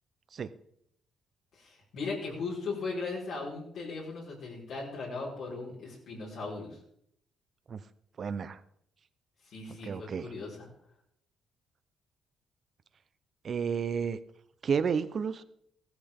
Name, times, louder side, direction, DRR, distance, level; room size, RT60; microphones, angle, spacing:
voice 1, 1.5-6.8 9.5-10.7, left 3 dB, 75° left, -4 dB, 5.0 m, -38 dB
voice 2, 8.2-8.6 9.9-10.3 13.4-14.2 14.6-15.4, right 6 dB, 50° right, 13 dB, 0.8 m, -31 dB
15.5 x 13.5 x 3.7 m, 0.71 s
cardioid pair, 90°, 0 cm